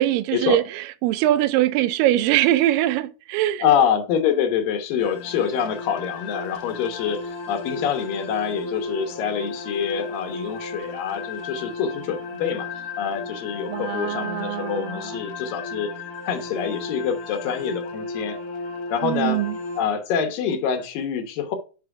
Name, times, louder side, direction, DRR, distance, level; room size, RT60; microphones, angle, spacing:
voice 1, 0.0-3.7 13.7-15.2 19.0-19.5, right 14 dB, 85° right, 2.3 m, -22 dB
voice 2, 3.6-16.0 16.3-18.4 18.9-19.4 19.8-21.6, left 7 dB, 80° left, 2.7 m, -26 dB
sound 1, 5.0-19.8, left 4 dB, 60° left, 1.5 m, -34 dB
6.7 x 5.9 x 4.7 m
omnidirectional pair, 4.0 m